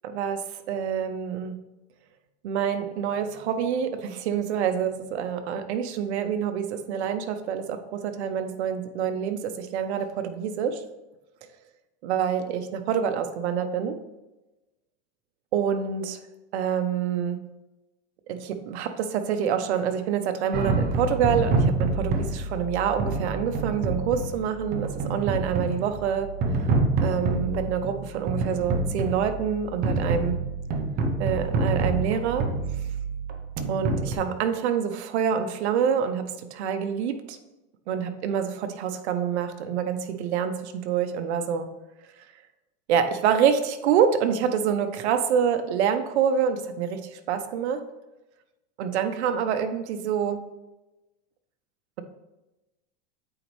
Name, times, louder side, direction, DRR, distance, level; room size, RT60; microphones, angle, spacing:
voice 1, 0.0-0.4 0.7-1.6 2.4-10.8 12.0-14.0 15.5-16.2 16.5-17.4 18.3-26.3 26.6-26.7 27.0-30.4 31.2-32.5 33.7-36.2 36.5-37.4 37.9-41.7 42.9-47.8 48.8-50.4, right 8 dB, 70° right, 8 dB, 0.8 m, -26 dB
sound 1, 20.5-34.2, right 3 dB, 25° right, 0.6 m, -27 dB
8.7 x 4.0 x 3.2 m, 1.0 s
supercardioid pair, 145°, 34 cm